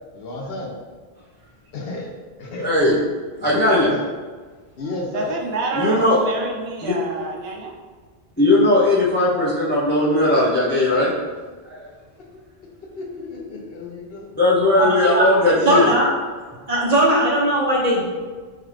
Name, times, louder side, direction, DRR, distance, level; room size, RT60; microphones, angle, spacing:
voice 1, 0.1-0.7 1.7-2.1 2.4-3.0 3.4-4.0 4.8-5.3 12.2-12.3 12.9-14.3 15.0-15.5, left 2 dB, 70° left, -1 dB, 0.8 m, -32 dB
voice 2, 2.6-3.0 3.4-3.9 5.7-6.2 6.8-7.0 8.4-11.1 11.6-11.8 14.4-15.9, left 1 dB, 20° left, -6 dB, 0.3 m, -18 dB
voice 3, 5.1-7.7, right 3 dB, 75° right, 0 dB, 0.8 m, -28 dB
voice 4, 14.8-15.3 15.6-16.1 16.7-18.1, right 1 dB, 45° right, -5 dB, 0.7 m, -18 dB
3.3 x 2.4 x 3.1 m, 1.4 s
omnidirectional pair, 1.1 m